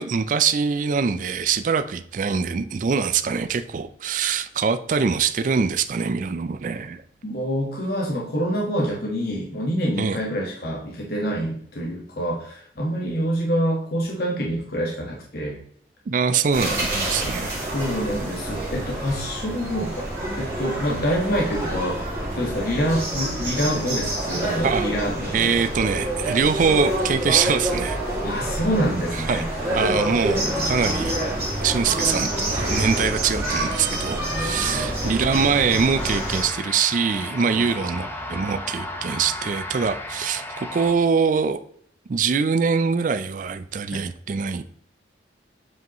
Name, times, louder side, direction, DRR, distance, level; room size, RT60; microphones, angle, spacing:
voice 1, 0.0-7.0 10.0-10.2 16.1-17.6 24.6-24.9 25.3-28.0 29.1-29.5 29.7-31.2 31.6-41.6 42.1-44.6, right 6 dB, 45° right, 10 dB, 0.4 m, -23 dB
voice 2, 7.2-15.6 17.6-20.1 20.4-22.0 22.3-25.6 28.2-29.4 34.7-35.1 37.5-37.6 43.9-44.0, equal, 55° left, -2 dB, 1.4 m, -26 dB
sound 1, 16.5-36.5, right 1 dB, 15° right, 2.3 m, -27 dB
sound 2, 36.0-40.9, left 1 dB, 10° left, 0.8 m, -34 dB
7.7 x 5.4 x 3.0 m, 0.63 s
head